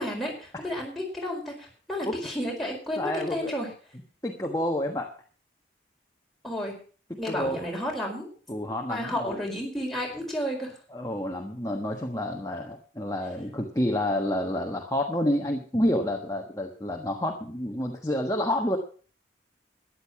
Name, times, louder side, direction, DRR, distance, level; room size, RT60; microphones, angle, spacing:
voice 1, 0.0-3.7 6.4-6.8 7.2-8.3 8.9-10.7, equal, ahead, -2 dB, 4.8 m, -32 dB
voice 2, 3.0-3.6 4.2-5.1 7.1-7.6 8.5-9.4 10.9-18.8, left 1 dB, 20° left, 2 dB, 1.3 m, -29 dB
13.5 x 10.5 x 5.9 m, 0.40 s
head